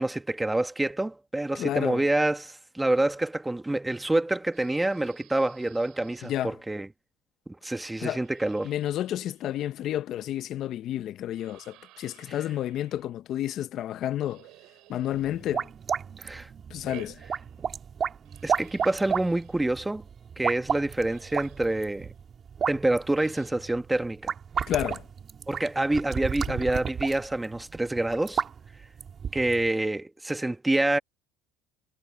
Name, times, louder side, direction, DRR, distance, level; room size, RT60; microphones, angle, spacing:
voice 1, 0.0-6.9 7.5-8.7 16.2-16.5 18.4-20.0 20.4-22.1 22.7-24.3 25.5-28.4 29.3-31.0, right 2 dB, 10° right, 1.3 m, -27 dB
voice 2, 1.5-2.0 6.2-6.6 8.0-8.2 8.6-14.5 14.9-15.7 16.7-17.2 24.7-25.1 26.5-26.6, left 12 dB, 50° left, 0.7 m, -31 dB
sound 1, 4.5-6.5 8.0-9.9 11.3-13.1 14.2-15.9 16.8-17.9 18.2-19.8 20.7-20.8 21.0-22.1 23.1-23.7, right 18 dB, 65° right, 5.6 m, -54 dB
sound 2, 15.1-29.7, right 7 dB, 35° right, 2.7 m, -33 dB
cardioid pair, 120°, 0 cm